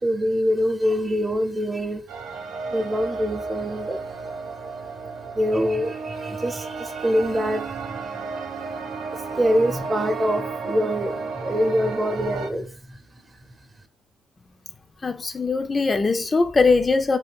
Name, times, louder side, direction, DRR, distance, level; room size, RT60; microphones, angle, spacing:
voice 1, 0.0-2.0 2.7-4.0 5.3-8.2 9.1-13.0, equal, 25° right, 0.6 m, -25 dB
sound 1, 2.1-12.5, right 4 dB, 85° right, 0.5 m, -33 dB
voice 2, 15.0-17.2, left 4 dB, 30° left, 0.3 m, -21 dB
2.6 x 2.3 x 3.4 m
cardioid pair, 90°, 0 cm